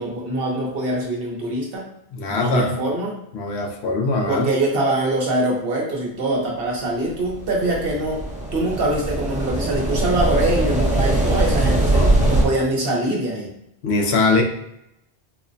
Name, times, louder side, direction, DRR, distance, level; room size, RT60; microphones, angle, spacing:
voice 1, 0.0-1.8 2.3-3.2 4.3-8.2 8.5-13.5, right 1 dB, 60° right, -2 dB, 1.0 m, -23 dB
voice 2, 2.1-2.7 3.3-4.5 11.9-12.3 13.8-14.4, left 3 dB, 75° left, 2 dB, 1.0 m, -21 dB
sound 1, 7.2-12.5, right 1 dB, 10° right, 0.6 m, -21 dB
4.5 x 2.1 x 2.5 m, 0.80 s
omnidirectional pair, 1.1 m